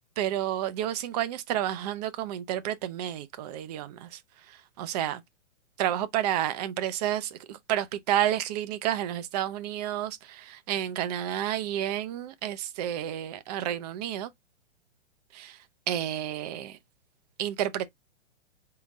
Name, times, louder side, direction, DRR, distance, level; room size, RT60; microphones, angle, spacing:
voice 1, 0.2-4.2 4.8-5.2 5.8-14.3 15.3-15.6 15.9-16.8 17.4-17.9, right 11 dB, 35° right, 0.6 m, -30 dB
3.8 x 2.3 x 4.0 m
hypercardioid pair, 135°, 35 cm